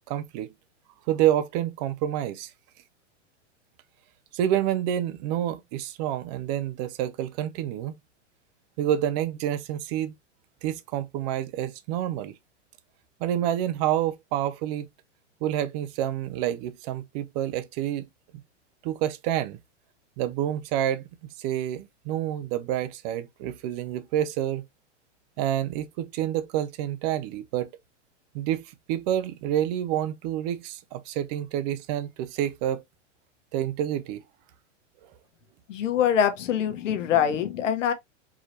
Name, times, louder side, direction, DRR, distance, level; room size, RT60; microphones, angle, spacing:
voice 1, 0.1-0.5 1.1-2.5 4.3-7.9 8.8-10.1 10.6-12.3 13.2-14.9 15.4-18.0 18.8-19.6 20.2-21.0 21.4-24.6 25.4-27.7 28.3-32.8 33.5-34.2, right 11 dB, 35° right, 0.6 m, -28 dB
voice 2, 35.7-37.9, left 9 dB, 80° left, 1.2 m, -24 dB
4.7 x 2.8 x 3.0 m
hypercardioid pair, 145°, 37 cm